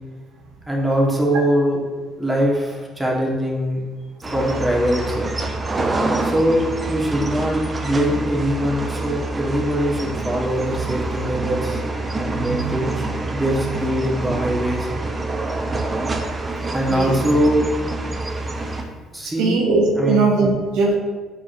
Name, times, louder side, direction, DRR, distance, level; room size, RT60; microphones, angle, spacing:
voice 1, 0.7-1.8 2.2-3.8 4.3-5.3 6.2-6.6 6.9-11.8 12.2-14.9 16.7-17.7 19.1-19.6 20.0-20.2, equal, 5° right, -3 dB, 1.4 m, -22 dB
sound 1, 4.2-18.8, right 2 dB, 30° right, 0.6 m, -26 dB
voice 2, 12.3-12.8 13.6-13.7 16.9-17.1 19.2-21.0, right 3 dB, 75° right, -1 dB, 0.6 m, -20 dB
4.6 x 4.4 x 2.6 m, 1.3 s
hypercardioid pair, 55°, 0 cm